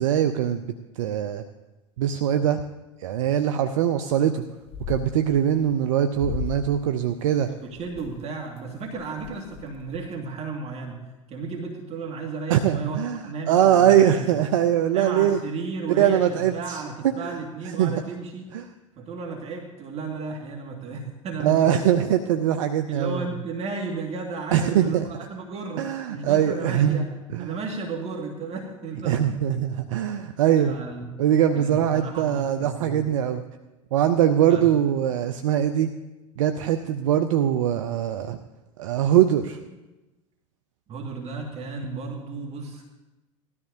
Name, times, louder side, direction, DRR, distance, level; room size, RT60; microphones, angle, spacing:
voice 1, 0.0-1.4 2.0-2.6 3.0-4.4 4.9-7.5 12.5-15.4 16.0-17.4 17.8-17.9 18.5-18.7 21.4-23.3 24.5-25.1 25.8-27.1 27.3-27.5 29.0-30.8 31.2-33.4 33.9-35.9 36.4-38.4 38.8-39.6, right 10 dB, 75° right, 8 dB, 0.6 m, -22 dB
sound 1, 4.1-4.4 4.7-5.7 6.1-6.8 7.2-8.2 8.7-8.8 9.0-10.1, left 8 dB, 35° left, 0.7 m, -36 dB
voice 2, 7.5-11.0 11.3-14.3 14.9-18.5 19.0-21.8 22.9-27.1 27.4-29.3 30.6-31.1 31.5-33.1 34.5-34.7 40.9-42.8, right 4 dB, 40° right, 0 dB, 2.1 m, -34 dB
19.0 x 13.0 x 2.8 m, 1.1 s
hypercardioid pair, 85°, 17 cm